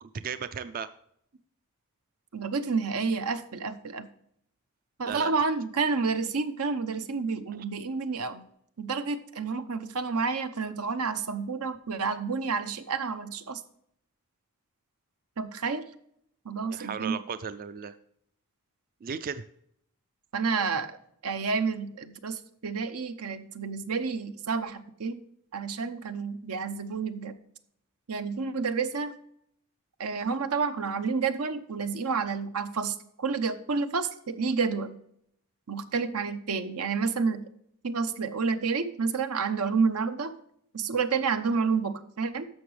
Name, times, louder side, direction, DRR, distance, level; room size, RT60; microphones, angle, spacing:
voice 1, 0.0-0.9 5.0-5.3 7.5-7.6 16.7-17.9 19.0-19.4, right 6 dB, 40° right, 12 dB, 0.4 m, -35 dB
voice 2, 2.3-4.1 5.0-8.4 8.8-13.6 15.4-15.9 16.4-17.2 20.3-21.0 21.2-25.2 25.5-27.4 28.1-29.1 30.0-35.0 35.7-37.4 37.8-40.3 40.7-42.5, right 5 dB, 90° right, 9 dB, 0.8 m, -29 dB
11.0 x 7.1 x 3.2 m, 0.70 s
head